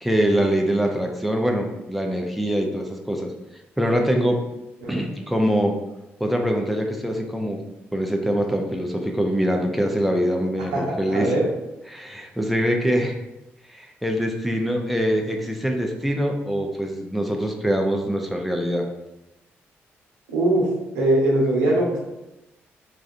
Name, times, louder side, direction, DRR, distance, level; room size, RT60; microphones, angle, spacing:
voice 1, 0.0-3.3 3.8-4.4 4.9-5.8 6.2-7.6 7.9-11.3 11.9-13.1 13.7-18.9, equal, ahead, 2 dB, 0.6 m, -23 dB
voice 2, 11.1-11.5 20.3-20.7 20.9-22.0, right 1 dB, 80° right, -3 dB, 0.7 m, -21 dB
4.1 x 2.4 x 2.5 m, 0.95 s
hypercardioid pair, 45°, 6 cm